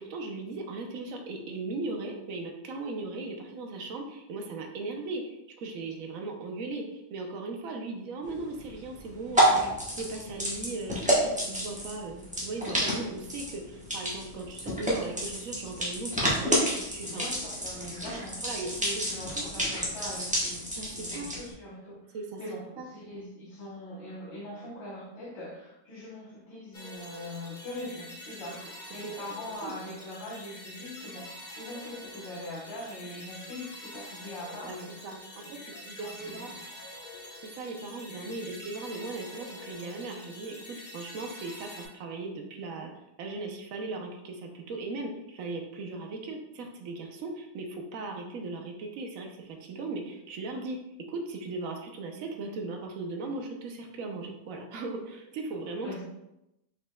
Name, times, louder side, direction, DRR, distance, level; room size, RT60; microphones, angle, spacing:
voice 1, 0.0-9.6 9.9-17.3 18.4-19.0 19.4-19.5 20.8-21.3 22.1-22.4 22.8-22.9 28.6-28.7 29.6-29.7 34.7-34.8 35.0-36.5 37.4-42.9 43.2-50.8 51.1-56.0, right 3 dB, 70° right, 2 dB, 0.8 m, -38 dB
sound 1, 8.2-21.5, equal, 10° right, 0.4 m, -30 dB
voice 2, 17.1-20.6 20.9-31.3 31.6-35.1 35.7-36.7 55.8-56.0, left 1 dB, 75° left, -9 dB, 1.9 m, -42 dB
sound 2, 26.7-41.9, left 1 dB, 45° left, 0.6 m, -46 dB
5.0 x 4.2 x 2.2 m, 0.88 s
omnidirectional pair, 2.1 m